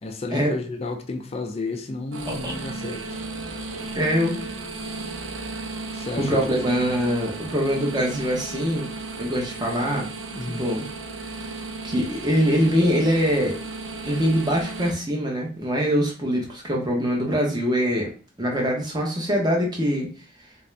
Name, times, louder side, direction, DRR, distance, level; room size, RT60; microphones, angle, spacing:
voice 1, 0.0-3.2 5.9-6.5 10.3-10.7, left 3 dB, 30° left, 0.4 m, -32 dB
sound 1, 2.1-14.9, right 3 dB, 65° right, 0.6 m, -35 dB
voice 2, 3.9-4.4 6.2-8.9 9.2-10.1 10.6-10.9 11.8-13.6 14.0-18.1 18.4-20.1, equal, 20° right, 0.9 m, -23 dB
3.3 x 2.7 x 3.2 m
head